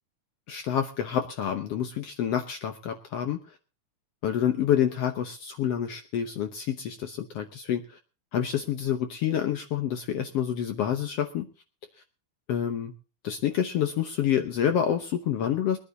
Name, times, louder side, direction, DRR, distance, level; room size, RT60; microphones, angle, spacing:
voice 1, 0.5-3.4 4.2-8.0 8.3-11.5 12.5-12.9 13.2-15.8, left 9 dB, 65° left, 7 dB, 1.7 m, -28 dB
22.0 x 9.9 x 3.9 m, 0.33 s
omnidirectional pair, 3.6 m